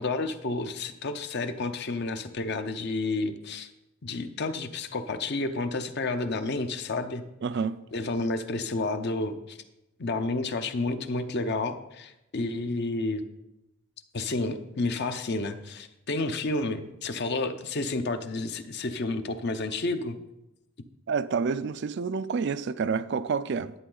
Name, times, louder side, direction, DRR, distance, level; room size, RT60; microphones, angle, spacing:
voice 1, 0.0-3.7 4.0-7.2 7.9-9.6 10.0-13.2 14.1-20.2, left 2 dB, 50° left, 0.7 m, -30 dB
voice 2, 7.4-7.8 21.1-23.7, right 5 dB, 50° right, 0.4 m, -28 dB
11.0 x 8.6 x 3.9 m
head